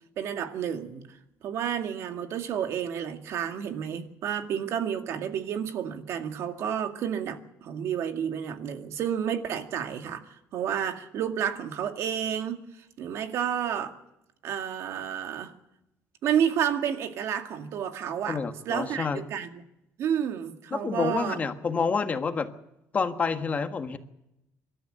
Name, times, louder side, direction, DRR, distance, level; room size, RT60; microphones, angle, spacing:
voice 1, 0.2-1.0 1.4-10.2 10.5-12.6 13.0-13.9 14.4-15.5 16.2-18.4 18.7-19.6 20.0-21.4, right 9 dB, 65° right, 2.0 m, -30 dB
voice 2, 18.3-19.2 20.7-22.5 22.9-24.0, left 5 dB, 30° left, 1.5 m, -28 dB
25.0 x 13.0 x 9.0 m
cardioid pair, 120°, 5 cm